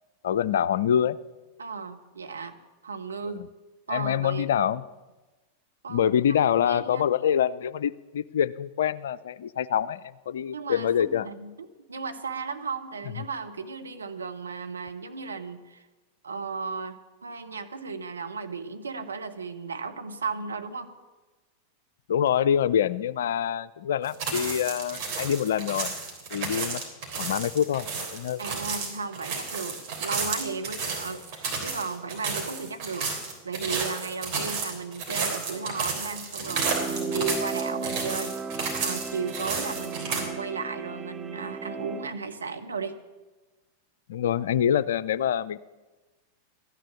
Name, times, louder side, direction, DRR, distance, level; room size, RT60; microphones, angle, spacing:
voice 1, 0.2-1.2 3.2-3.5 3.9-4.9 5.9-11.3 13.2-13.3 22.1-25.9 26.3-26.8 27.2-28.4 44.1-45.6, left 9 dB, 60° left, 17 dB, 0.4 m, -25 dB
voice 2, 1.6-2.6 2.8-3.4 3.9-4.6 5.8-6.1 6.6-7.1 10.5-15.9 16.2-20.9 28.4-33.1 33.4-38.4 38.8-42.9, right 5 dB, 75° right, 6 dB, 1.0 m, -35 dB
sound 1, 24.0-40.2, right 4 dB, 45° right, 3.4 m, -32 dB
sound 2, 36.4-42.2, right 4 dB, 15° right, 0.4 m, -35 dB
14.0 x 10.0 x 7.4 m, 1.2 s
figure-of-eight pair, 90°, 0 cm